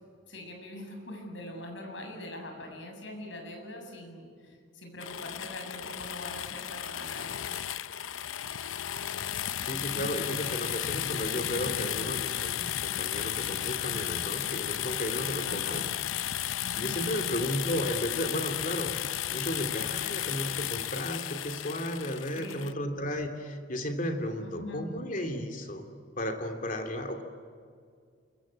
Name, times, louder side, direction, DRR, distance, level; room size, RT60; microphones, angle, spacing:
voice 1, 0.3-7.5 9.7-10.1 15.4-15.8 16.6-17.0 17.4-17.5 22.3-22.7 24.4-24.9, left 1 dB, 65° left, 3 dB, 7.5 m, -43 dB
sound 1, 5.0-22.7, left 11 dB, 90° left, 0.7 m, -34 dB
voice 2, 9.7-15.9 16.8-19.0 19.3-25.9 26.2-27.2, equal, 40° left, 5 dB, 2.9 m, -34 dB
28.0 x 23.5 x 8.9 m, 2.2 s
head